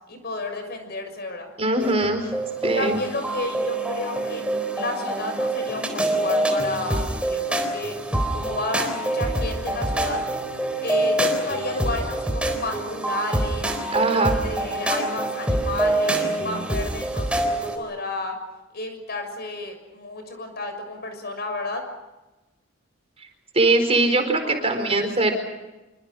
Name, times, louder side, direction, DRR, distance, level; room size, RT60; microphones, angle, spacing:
voice 1, 0.1-1.5 2.8-4.4 4.8-8.0 8.3-10.2 10.8-13.7 14.1-18.3 18.7-21.8 24.4-25.1, left 2 dB, 55° left, 6 dB, 6.5 m, -31 dB
voice 2, 1.6-2.2 2.6-3.0 13.9-14.4 23.5-25.3, right 2 dB, 30° right, 5 dB, 4.4 m, -21 dB
sound 1, 1.8-17.8, right 1 dB, 5° right, 4.1 m, -26 dB
27.0 x 25.0 x 6.4 m, 1.1 s
head